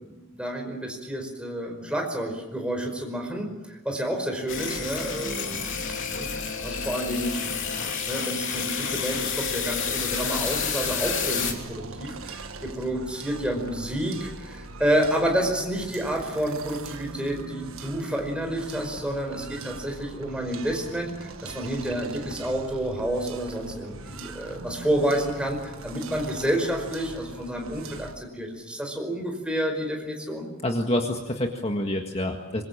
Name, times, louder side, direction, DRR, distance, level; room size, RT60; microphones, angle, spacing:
voice 1, 0.0-6.3 6.6-7.4 8.1-30.5, right 1 dB, 5° right, 2 dB, 5.2 m, -29 dB
sound 1, 4.5-11.5, left 6 dB, 60° left, 3.2 m, -29 dB
sound 2, 10.1-28.1, right 3 dB, 70° right, 1.5 m, -41 dB
voice 2, 30.6-32.6, left 1 dB, 30° left, 3 dB, 1.8 m, -27 dB
25.5 x 22.5 x 7.4 m, 1.0 s
head